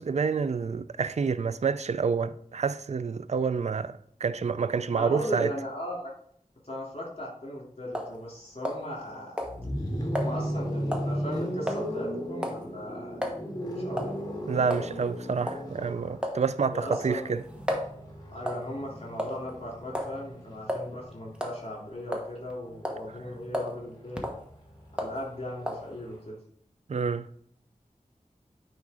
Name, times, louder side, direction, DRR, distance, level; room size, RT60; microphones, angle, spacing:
voice 1, 0.0-5.5 14.5-17.4 26.9-27.3, right 5 dB, 55° right, 0.4 m, -28 dB
voice 2, 4.9-6.1 6.6-9.4 10.0-13.2 13.7-14.2 16.7-17.4 18.3-24.2 24.9-26.4, equal, 45° left, 3.2 m, -37 dB
sound 1, 7.9-8.2 8.7-9.1 9.4-9.6 10.2-10.3 10.9-11.1 11.7-11.8 12.4-12.6 13.2-13.4 14.0-14.2 14.7-14.9 15.5-15.6 16.2-16.5 16.9-17.9 18.5-18.7 19.2-19.5 20.0-20.2 20.7-20.9 21.4-21.6 22.1-22.5 22.9-23.1 23.5-23.8 24.2-24.4 25.0-25.2 25.7-25.9, equal, 10° right, 1.2 m, -32 dB
sound 2, 9.4-21.4 22.6-26.2, equal, 30° left, 1.8 m, -36 dB
9.3 x 3.7 x 3.8 m
wide cardioid pair, 60°, 14 cm